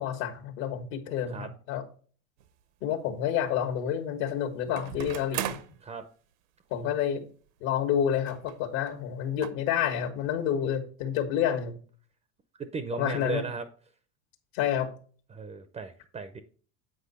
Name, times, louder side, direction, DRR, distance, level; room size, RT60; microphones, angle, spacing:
voice 1, 0.0-1.8 2.8-5.6 6.7-7.2 7.6-11.8 13.0-13.4 14.5-14.9, left 9 dB, 65° left, 6 dB, 1.5 m, -29 dB
sound 1, 2.4-2.5 4.8-5.8 6.7-6.8 7.0-7.1 8.3-8.6 8.9-9.0 9.4-9.5, right 11 dB, 75° right, 0.9 m, -36 dB
voice 2, 12.6-13.7 15.3-16.4, right 4 dB, 15° right, 11 dB, 0.5 m, -36 dB
8.5 x 4.7 x 4.2 m, 0.43 s
supercardioid pair, 115°, 41 cm